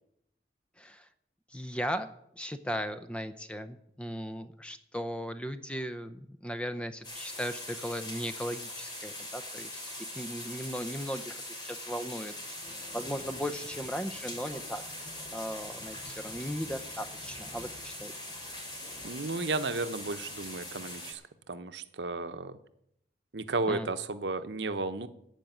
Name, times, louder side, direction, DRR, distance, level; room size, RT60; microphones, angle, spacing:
voice 1, 1.5-2.1 2.4-12.3 12.9-14.8 15.3-18.1 23.7-23.9, equal, 5° left, 10 dB, 0.6 m, -37 dB
sound 1, 7.0-21.1, left 1 dB, 25° left, 2.9 m, -42 dB
voice 2, 19.0-21.2 21.5-22.6 23.3-25.1, right 3 dB, 85° right, 10 dB, 0.9 m, -33 dB
15.0 x 5.3 x 9.3 m, 0.77 s
head